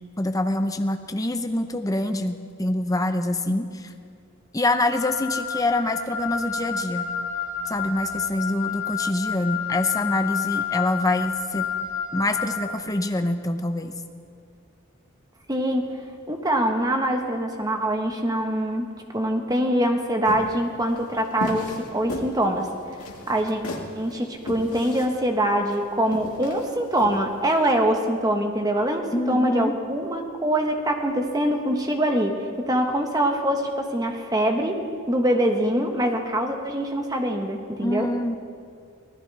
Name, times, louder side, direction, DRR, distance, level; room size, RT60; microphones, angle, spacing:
voice 1, 0.2-3.9 4.5-7.1 7.7-11.7 12.1-13.9 29.1-29.8 37.8-38.4, left 1 dB, 15° left, 7 dB, 0.6 m, -25 dB
Wind instrument woodwind instrument, 4.9-12.7, left 7 dB, 70° right, 2.8 m, -30 dB
voice 2, 15.5-15.9 16.3-18.9 19.1-22.7 23.3-23.6 23.9-34.8 35.1-38.1, right 1 dB, 15° right, 3 dB, 1.2 m, -24 dB
sound 1, 20.2-27.7, left 1 dB, 85° left, 1.9 m, -36 dB
24.5 x 16.5 x 3.4 m, 2.4 s
head